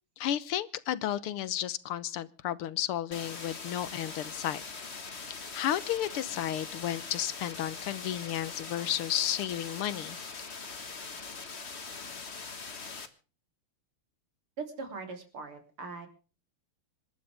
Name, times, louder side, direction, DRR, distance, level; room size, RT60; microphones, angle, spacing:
voice 1, 0.2-4.6 5.5-10.2, left 11 dB, 80° left, 17 dB, 1.8 m, -32 dB
sound 1, 3.1-13.1, left 4 dB, 30° left, 1.7 m, -42 dB
voice 2, 14.6-16.1, right 4 dB, 75° right, 6 dB, 4.2 m, -40 dB
26.5 x 12.5 x 3.4 m, 0.36 s
omnidirectional pair, 2.4 m